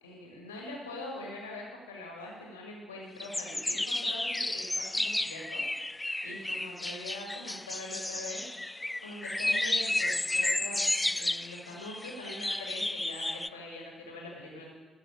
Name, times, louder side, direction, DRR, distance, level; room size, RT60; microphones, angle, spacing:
voice 1, 0.0-8.5 9.0-14.7, left 2 dB, 85° left, -1 dB, 1.8 m, -43 dB
sound 1, 3.2-13.5, left 2 dB, 15° left, 0.3 m, -32 dB
13.5 x 6.1 x 8.9 m, 1.3 s
figure-of-eight pair, 45°, 0 cm